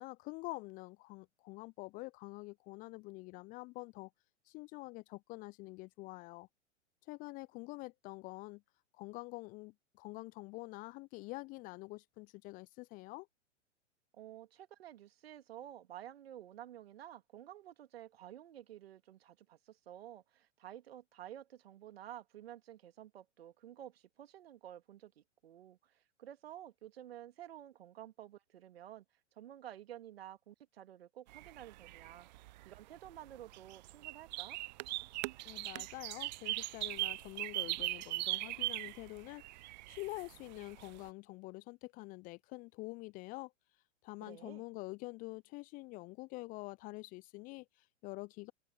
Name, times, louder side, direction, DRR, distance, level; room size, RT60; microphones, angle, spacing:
voice 1, 0.0-4.1 4.5-6.5 7.0-8.6 8.9-13.3 35.4-43.5 44.0-48.5, left 23 dB, 25° left, 0.7 m, -47 dB
voice 2, 14.1-29.0 29.4-32.3 32.6-34.6 44.2-44.6, right 11 dB, 55° right, 2.8 m, -52 dB
sound 1, 31.3-41.1, right 19 dB, 40° right, 0.8 m, -40 dB
figure-of-eight pair, 110°, 36 cm